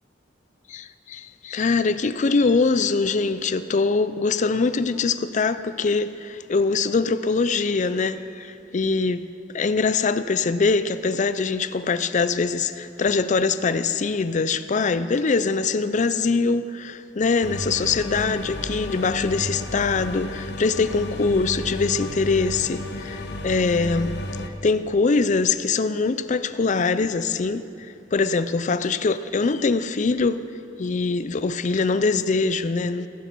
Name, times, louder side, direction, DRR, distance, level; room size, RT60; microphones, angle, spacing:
voice 1, 0.7-9.3 9.5-24.2 24.6-30.4 30.8-33.1, left 4 dB, 40° left, 0.4 m, -23 dB
sound 1, 17.4-24.5, left 1 dB, 65° left, 1.0 m, -32 dB
15.0 x 14.0 x 4.6 m
head